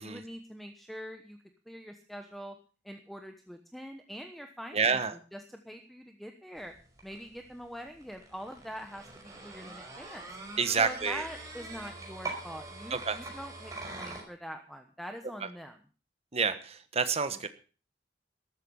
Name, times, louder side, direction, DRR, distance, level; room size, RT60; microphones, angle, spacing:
voice 1, 0.0-1.4 1.7-2.6 2.8-6.7 7.0-10.2 10.8-15.8 17.3-17.4, equal, ahead, 6 dB, 1.1 m, -44 dB
voice 2, 4.7-5.1 10.6-11.2 12.9-13.2 16.3-17.5, right 5 dB, 35° right, 11 dB, 1.3 m, -28 dB
sound 1, 6.6-14.2, right 3 dB, 20° right, 5.3 m, -44 dB
13.5 x 13.0 x 5.4 m, 0.37 s
head